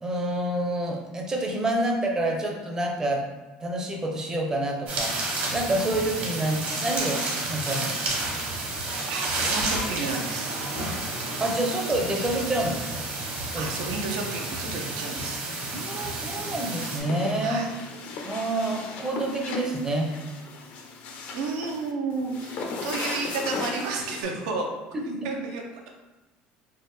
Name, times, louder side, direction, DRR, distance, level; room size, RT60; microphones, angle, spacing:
voice 1, 0.0-3.2 3.6-5.1 5.5-8.0 11.4-13.0 13.5-13.7 15.7-17.7 18.2-20.1 24.9-25.3, right 1 dB, 20° right, 1 dB, 0.6 m, -28 dB
sound 1, 4.9-17.0, right 2 dB, 55° right, 1.1 m, -31 dB
voice 2, 9.1-10.6 13.6-15.4 17.4-17.7 21.3-24.7 25.2-25.6, right 3 dB, 85° right, 2 dB, 0.6 m, -31 dB
sound 2, 16.4-24.2, left 3 dB, 55° left, 0.5 m, -37 dB
3.4 x 2.4 x 3.2 m, 1.1 s
cardioid pair, 130°, 3 cm